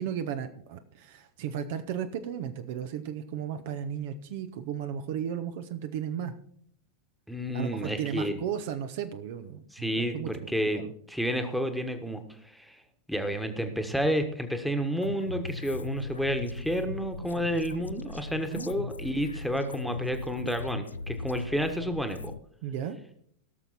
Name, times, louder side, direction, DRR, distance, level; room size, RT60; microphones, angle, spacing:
voice 1, 0.0-6.3 7.5-10.9 18.4-18.7 22.6-23.0, right 9 dB, 50° right, 10 dB, 0.8 m, -35 dB
voice 2, 7.3-8.4 9.7-12.8 13.1-22.3, equal, ahead, 7 dB, 1.4 m, -30 dB
sound 1, 15.0-22.4, left 4 dB, 80° left, 0.4 m, -38 dB
17.0 x 6.7 x 4.2 m, 0.65 s
figure-of-eight pair, 90°, 0 cm